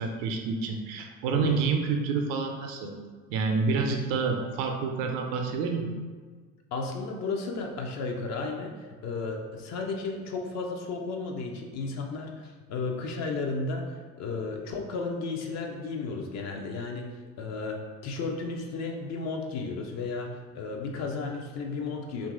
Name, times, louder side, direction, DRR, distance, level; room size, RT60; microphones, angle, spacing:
voice 1, 0.0-2.9 3.3-5.9, right 4 dB, 55° right, 4 dB, 0.5 m, -28 dB
voice 2, 6.7-8.7 9.0-13.9 14.2-17.1 17.4-22.3, left 3 dB, 40° left, 2 dB, 0.5 m, -33 dB
2.8 x 2.6 x 2.4 m, 1.5 s
figure-of-eight pair, 60°, 41 cm